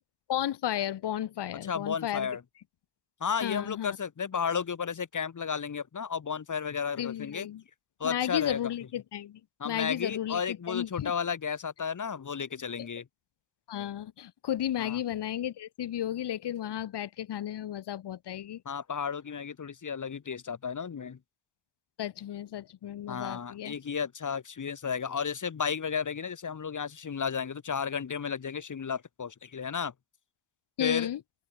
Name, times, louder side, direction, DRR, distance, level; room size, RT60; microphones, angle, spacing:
voice 1, 0.3-2.3 3.4-4.0 7.0-7.6 8.0-11.1 13.7-18.6 22.0-23.7 30.8-31.2, left 11 dB, 55° left, 3.3 m, -33 dB
voice 2, 1.6-2.4 3.2-7.5 8.0-8.6 9.6-13.1 14.8-15.0 18.7-21.2 23.1-29.9 30.8-31.1, left 6 dB, 40° left, 3.6 m, -33 dB
open air
hypercardioid pair, 55°, 49 cm